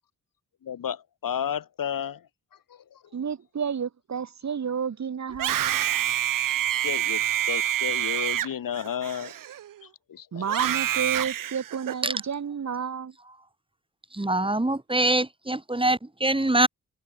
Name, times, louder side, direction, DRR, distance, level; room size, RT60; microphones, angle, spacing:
voice 1, 0.6-2.2 2.7-3.0 6.8-9.3 10.1-10.6, left 9 dB, 70° left, 2.6 m, -32 dB
voice 2, 3.1-5.8 10.3-13.1, right 7 dB, 50° right, 1.4 m, -31 dB
Screaming, 5.3-9.8 10.4-12.2, right 11 dB, 70° right, 0.8 m, -27 dB
voice 3, 14.1-16.7, right 2 dB, 15° right, 2.3 m, -24 dB
supercardioid pair, 45°, 34 cm